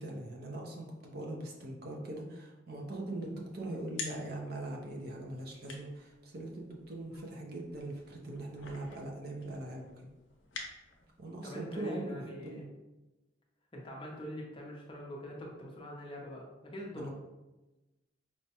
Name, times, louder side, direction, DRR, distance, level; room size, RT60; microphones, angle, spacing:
voice 1, 0.0-10.1 11.2-12.7 17.0-17.1, right 2 dB, 50° right, 0 dB, 0.5 m, -41 dB
sound 1, 3.0-11.3, left 4 dB, 70° left, 0.6 m, -49 dB
voice 2, 11.4-12.7 13.7-17.2, equal, 25° left, -2 dB, 0.5 m, -43 dB
4.6 x 2.1 x 2.8 m, 1.1 s
head